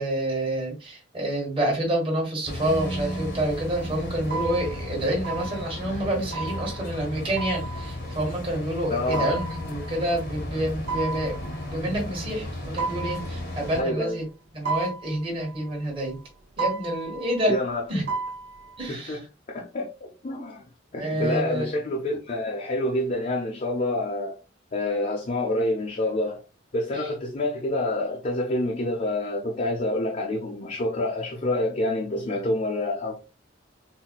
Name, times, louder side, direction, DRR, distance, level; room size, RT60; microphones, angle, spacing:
voice 1, 0.0-12.5 12.7-14.2 14.5-16.2 16.6-17.6 17.9-18.0 18.8-19.2 21.0-21.7 26.9-27.1, right 1 dB, 30° right, 1.1 m, -28 dB
sound 1, 2.4-13.8, left 1 dB, 60° left, 0.9 m, -34 dB
sound 2, 2.8-3.7 4.3-4.9 5.2-5.9 6.3-8.2 9.1-10.4 10.9-11.8 12.8-14.1 14.6-16.2 16.6-17.6 18.1-18.9, right 4 dB, 70° right, 0.6 m, -34 dB
voice 2, 8.9-9.3 13.8-14.2 17.5-17.8 18.9-19.2 19.5-20.6 20.9-24.4 24.7-26.4 26.7-33.2, left 1 dB, 40° left, 0.6 m, -27 dB
4.0 x 2.2 x 2.2 m
head